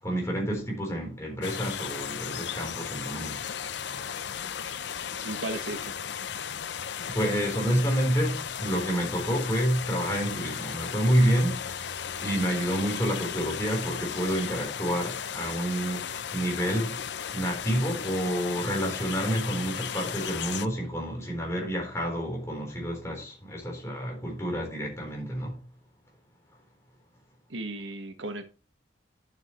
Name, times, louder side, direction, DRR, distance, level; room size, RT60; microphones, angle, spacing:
voice 1, 0.0-3.4 7.1-17.1 17.3-25.6, equal, 15° left, 3.9 m, -29 dB
sound 1, 1.4-20.7, left 8 dB, 65° left, 0.6 m, -35 dB
voice 2, 5.2-6.0 27.5-28.4, right 2 dB, 85° right, 1.3 m, -35 dB
11.0 x 7.3 x 3.1 m
head